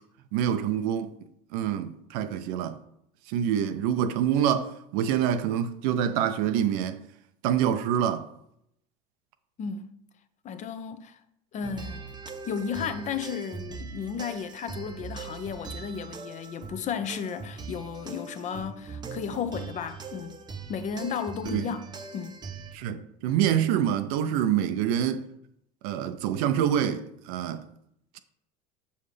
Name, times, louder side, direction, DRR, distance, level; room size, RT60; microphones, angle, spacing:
voice 1, 0.3-1.1 1.5-2.8 3.3-7.0 7.4-8.3 21.5-21.6 22.7-25.2 25.8-27.6, right 9 dB, 70° right, 0.5 m, -26 dB
voice 2, 9.6-9.9 10.4-11.2 11.5-12.0 12.4-20.4 20.7-22.4, left 7 dB, 40° left, 0.6 m, -34 dB
sound 1, 11.6-22.8, right 5 dB, 20° right, 0.7 m, -41 dB
6.6 x 5.5 x 3.3 m
supercardioid pair, 95°, 20 cm